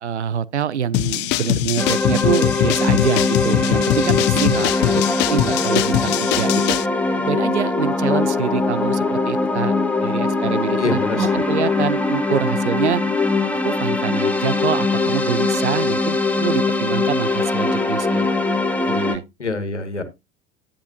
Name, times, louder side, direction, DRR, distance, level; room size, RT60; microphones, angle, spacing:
voice 1, 0.0-5.0 5.3-6.8 7.2-9.7 10.0-13.0 13.6-18.3 18.9-19.2, right 8 dB, 80° right, 0.7 m, -25 dB
sound 1, 0.9-6.9, left 17 dB, 30° left, 0.5 m, -22 dB
sound 2, 1.8-19.2, left 3 dB, 5° left, 1.8 m, -21 dB
voice 2, 10.8-11.4 19.4-20.0, left 3 dB, 85° left, 1.7 m, -26 dB
10.5 x 10.0 x 2.7 m
figure-of-eight pair, 80°, 34 cm